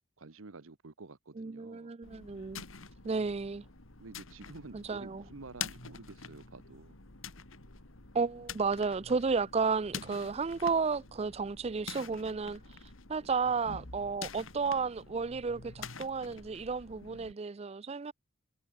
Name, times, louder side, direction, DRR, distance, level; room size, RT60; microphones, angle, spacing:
voice 1, 0.2-1.9 4.0-7.0 13.2-13.3, right 3 dB, 85° right, 1.1 m, -50 dB
voice 2, 1.4-2.6 3.0-3.6 4.7-5.2 8.1-12.8 13.1-18.1, right 4 dB, 30° right, 0.4 m, -33 dB
sound 1, 2.0-17.3, left 6 dB, 80° left, 2.5 m, -47 dB
head